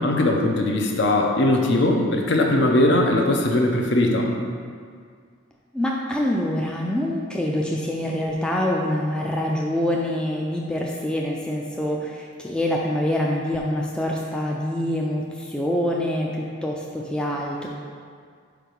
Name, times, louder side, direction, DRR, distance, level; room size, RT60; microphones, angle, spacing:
voice 1, 0.0-4.4, left 1 dB, 55° left, 1 dB, 0.7 m, -20 dB
voice 2, 5.7-17.7, left 1 dB, 5° left, -2 dB, 0.3 m, -25 dB
4.7 x 4.6 x 5.1 m, 2.1 s
head